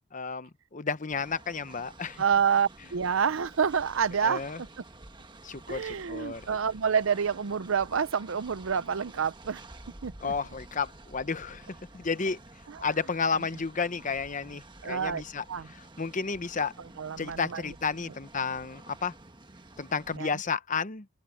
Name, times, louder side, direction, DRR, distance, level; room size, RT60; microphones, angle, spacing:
voice 1, 0.1-2.2 4.2-4.6 5.4-6.5 10.2-12.4 12.8-16.7 17.2-19.1 19.8-21.1, left 5 dB, 40° left, 0.9 m, -32 dB
Train, 1.1-20.2, right 2 dB, 20° right, 1.3 m, -50 dB
voice 2, 2.2-4.4 5.7-9.6 10.0-10.3 12.7-12.9 14.8-15.2 15.5-15.7 17.0-17.6 20.2-20.4, right 7 dB, 70° right, 0.6 m, -28 dB
open air
head